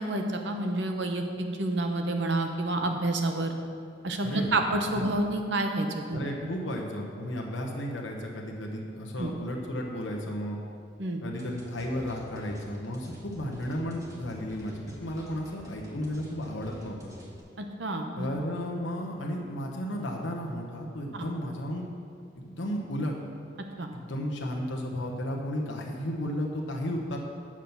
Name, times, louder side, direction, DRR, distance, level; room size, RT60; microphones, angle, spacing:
voice 1, 0.0-3.5 4.0-6.2 9.2-9.3 11.0-11.2 17.6-18.3 21.1-21.3 23.8-23.9, right 2 dB, 70° right, 4 dB, 0.9 m, -29 dB
voice 2, 6.1-10.6 11.2-17.1 18.2-21.8 22.4-23.1 23.9-27.2, equal, 80° left, 0 dB, 1.1 m, -33 dB
sound 1, 11.4-17.4, equal, 20° right, 1.6 m, -48 dB
7.4 x 6.1 x 6.9 m, 2.3 s
head